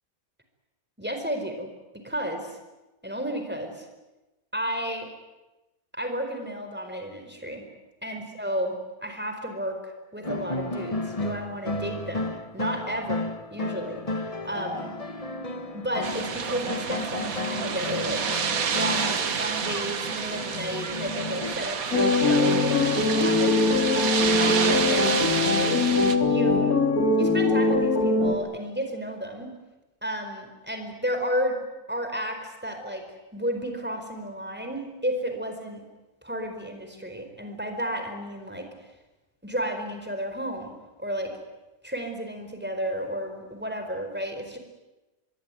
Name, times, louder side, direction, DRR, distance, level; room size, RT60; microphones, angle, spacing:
voice 1, 1.0-1.7 2.0-2.6 3.0-3.9 4.5-5.1 5.9-7.6 8.0-8.7 9.0-13.2 13.5-14.0 14.4-14.9 15.7-18.2 18.7-25.8 26.3-26.7 27.1-29.5 30.0-31.6 31.9-33.0 33.3-35.8 36.2-38.7 39.4-40.7 41.0-41.4 41.8-44.6, equal, 5° right, 5 dB, 4.6 m, -32 dB
sound 1, 10.2-21.5, left 2 dB, 25° left, 1.3 m, -33 dB
sound 2, 16.0-26.2, right 6 dB, 70° right, 1.8 m, -29 dB
sound 3, 21.9-28.3, left 3 dB, 75° left, 3.3 m, -22 dB
25.5 x 21.5 x 9.3 m, 1.1 s
omnidirectional pair, 1.5 m